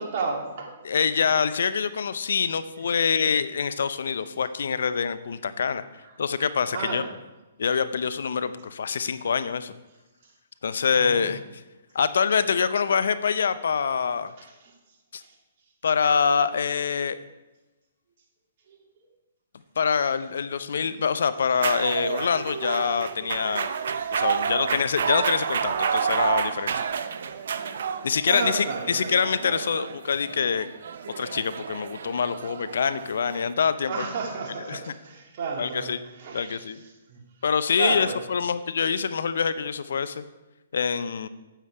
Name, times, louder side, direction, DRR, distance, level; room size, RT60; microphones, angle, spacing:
voice 1, 0.0-0.8 1.2-1.3 3.0-3.1 6.0-6.1 6.7-7.1 10.9-11.3 14.4-14.7 15.2-15.3 16.0-16.2 18.7-18.8 24.7-24.9 27.3-27.6 28.2-29.1 33.9-36.6 37.1-37.2 37.8-38.2, right 4 dB, 50° right, 1 dB, 2.4 m, -33 dB
voice 2, 0.8-5.8 6.2-7.0 7.6-9.7 10.6-11.4 11.9-14.3 15.1-15.2 15.8-17.2 19.8-23.7 24.1-26.7 28.0-30.7 31.2-34.0 34.7-34.8 35.6-36.0 36.3-36.8 37.4-40.2 40.7-41.3, left 6 dB, 70° left, 14 dB, 0.6 m, -25 dB
sound 1, 21.6-33.5, right 7 dB, 65° right, 0.7 m, -30 dB
9.1 x 8.4 x 4.7 m, 1.1 s
hypercardioid pair, 130°, 0 cm